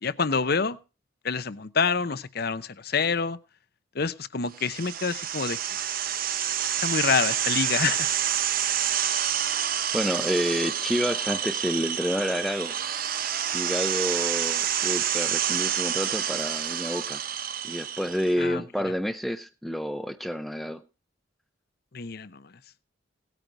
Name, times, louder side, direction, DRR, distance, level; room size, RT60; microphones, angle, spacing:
voice 1, 0.0-0.8 1.2-3.4 3.9-5.8 6.7-8.1 18.4-18.9 21.9-22.6, left 5 dB, 50° left, 15 dB, 0.7 m, -27 dB
sound 1, 4.6-18.3, right 10 dB, 45° right, 0.9 m, -28 dB
voice 2, 9.9-12.7 13.5-17.2 17.6-20.8, equal, ahead, 9 dB, 0.6 m, -29 dB
18.5 x 9.2 x 4.6 m, 0.32 s
head